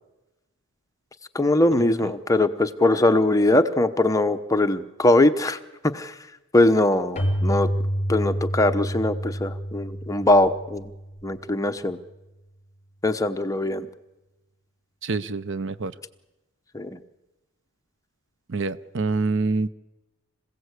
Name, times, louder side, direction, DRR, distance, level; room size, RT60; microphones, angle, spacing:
voice 1, 1.3-5.6 5.9-6.1 6.5-7.7 8.1-10.9 11.2-12.0 13.0-13.9 16.7-17.0, left 2 dB, 15° left, 8 dB, 0.9 m, -21 dB
Keyboard (musical), 7.2-11.7, equal, 35° left, 3.1 m, -28 dB
voice 2, 15.0-15.9 18.5-19.7, right 3 dB, 60° right, 15 dB, 0.7 m, -26 dB
26.0 x 16.5 x 8.2 m, 1.0 s
head